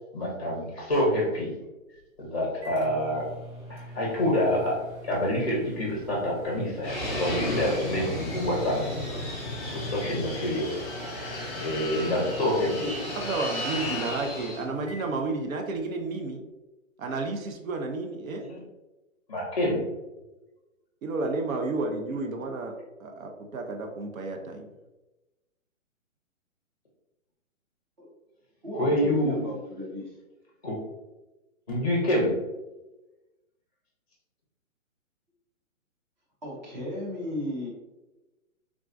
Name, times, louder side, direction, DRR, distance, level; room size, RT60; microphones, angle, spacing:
voice 1, 0.1-1.5 2.2-3.3 3.7-4.7 5.0-8.9 9.7-10.7 11.6-13.0 18.4-18.6 19.3-19.8 28.7-29.6 30.6-30.8 31.7-32.3, left 1 dB, 25° left, -3 dB, 0.5 m, -27 dB
Microwave oven, 1.9-16.0, right 1 dB, 60° right, 1.1 m, -46 dB
Fixed-wing aircraft airplane, 6.8-14.6, left 1 dB, 5° right, 0.8 m, -33 dB
voice 2, 13.2-16.4 17.0-18.5 21.0-24.7, right 3 dB, 80° right, 3 dB, 0.7 m, -31 dB
voice 3, 28.6-30.1 36.4-37.7, left 1 dB, 35° right, -2 dB, 0.7 m, -35 dB
3.5 x 2.3 x 2.4 m, 1.0 s
hypercardioid pair, 175°, 40 cm